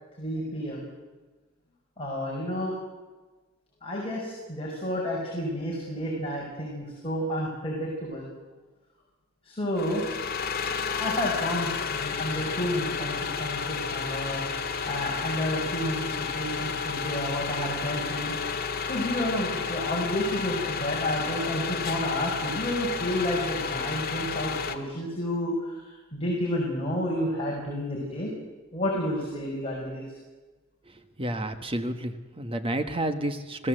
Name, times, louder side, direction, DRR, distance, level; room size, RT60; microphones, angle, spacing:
voice 1, 0.2-0.9 2.0-2.7 3.8-8.3 9.4-10.0 11.0-18.3 18.9-28.3 28.7-30.0, left 1 dB, 25° left, -3 dB, 5.8 m, -30 dB
sound 1, 9.8-24.7, left 6 dB, 45° left, 2.0 m, -31 dB
voice 2, 31.2-33.7, right 1 dB, 25° right, 8 dB, 1.4 m, -30 dB
26.5 x 17.0 x 7.9 m, 1.2 s
head